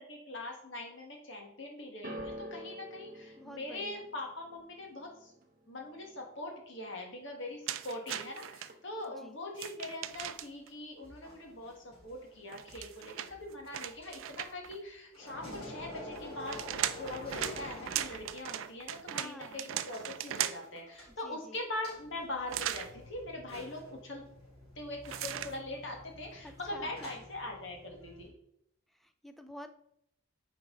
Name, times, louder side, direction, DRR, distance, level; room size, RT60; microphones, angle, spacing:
voice 1, 0.0-5.3 5.7-24.2 24.7-28.3, left 2 dB, 55° left, 1 dB, 1.6 m, -42 dB
sound 1, 2.0-8.3 8.6-9.2 10.0-10.1, equal, 40° right, 0.8 m, -49 dB
voice 2, 3.4-4.0 9.2-9.4 19.1-19.7 21.1-21.6 26.4-27.1 28.9-29.7, left 1 dB, ahead, 7 dB, 0.4 m, -49 dB
sound 2, 7.7-8.7 9.5-10.7 12.5-14.8 16.2-20.8 22.5-22.9 25.0-25.6, right 11 dB, 70° right, 0.4 m, -38 dB
sound 3, 10.0-14.9 15.1-18.5 18.8-18.9 19.9-20.0 20.4-21.4 21.8-28.3, left 1 dB, 25° left, 2.8 m, -49 dB
9.3 x 4.6 x 3.8 m, 0.75 s
head